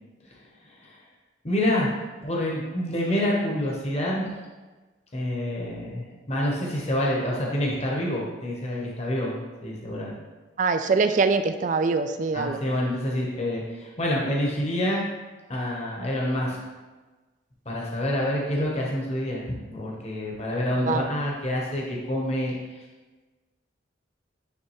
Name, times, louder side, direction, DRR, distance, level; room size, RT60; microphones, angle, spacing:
voice 1, 1.4-1.9 2.2-4.3 5.1-10.1 12.3-15.0 15.5-16.6 17.7-22.5, left 1 dB, 35° left, -3 dB, 0.9 m, -27 dB
voice 2, 10.6-12.6 20.8-21.1, right 4 dB, 45° right, 9 dB, 0.3 m, -23 dB
9.4 x 3.3 x 3.0 m, 1.2 s
head